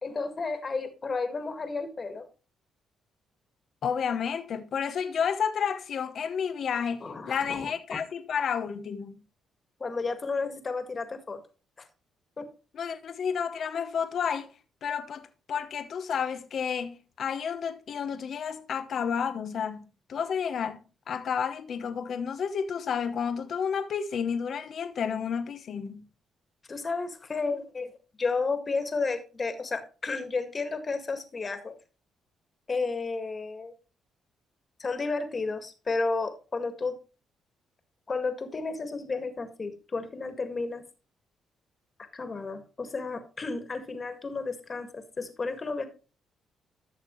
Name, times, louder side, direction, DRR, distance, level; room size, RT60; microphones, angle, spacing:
voice 1, 0.0-2.3 7.0-8.0 9.8-11.4 11.8-11.9 12.4-12.5 26.7-27.9 28.2-31.8 32.7-33.7 34.8-36.9 38.1-40.8 42.1-45.9, left 4 dB, 35° left, 1.9 m, -32 dB
voice 2, 3.8-9.1 12.7-14.5 14.8-20.8 21.1-26.0, left 7 dB, 60° left, 0.9 m, -31 dB
13.0 x 6.6 x 3.1 m
cardioid pair, 90°, 0 cm